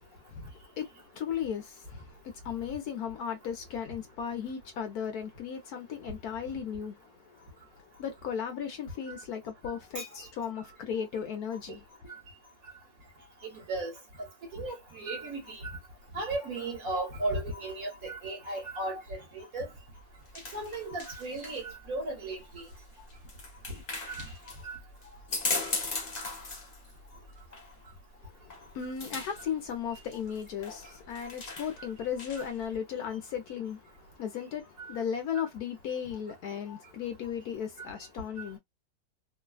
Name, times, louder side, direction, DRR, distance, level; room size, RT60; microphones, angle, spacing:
voice 1, 0.1-7.0 8.0-11.8 28.4-33.9 34.2-38.6, left 8 dB, 65° left, 1.1 m, -36 dB
voice 2, 13.4-13.9 14.2-15.8 16.1-19.7 20.5-22.7 23.7-23.8 24.1-24.3 24.6-24.8 25.6-25.7 34.8-34.9 36.7-36.8, right 2 dB, 55° right, 1.5 m, -36 dB
sound 1, 19.7-32.7, left 3 dB, 40° left, 0.6 m, -39 dB
3.2 x 2.1 x 2.2 m
omnidirectional pair, 1.9 m